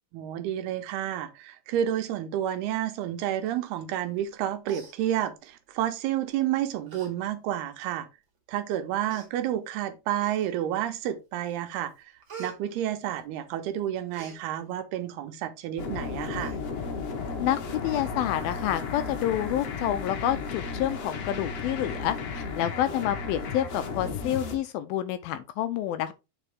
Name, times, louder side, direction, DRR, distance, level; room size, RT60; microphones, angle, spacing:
voice 1, 0.1-8.1 8.5-11.9 12.4-16.5, right 11 dB, 85° right, 2.9 m, -30 dB
Human voice, 4.2-4.4 4.6-5.6 6.3-6.5 6.9-7.1 7.5-7.6 8.4-8.5 9.1-9.3 10.2-10.7 11.2-11.6 11.8-13.5 13.8-14.4 16.3-16.6 17.0-17.1 17.4-17.5 17.9-18.5 18.9-19.0, right 4 dB, 35° right, 2.3 m, -47 dB
sound 1, 15.8-24.5, left 4 dB, 60° left, 1.8 m, -34 dB
voice 2, 17.4-26.1, left 12 dB, 80° left, 2.3 m, -28 dB
9.0 x 5.0 x 3.5 m
omnidirectional pair, 4.5 m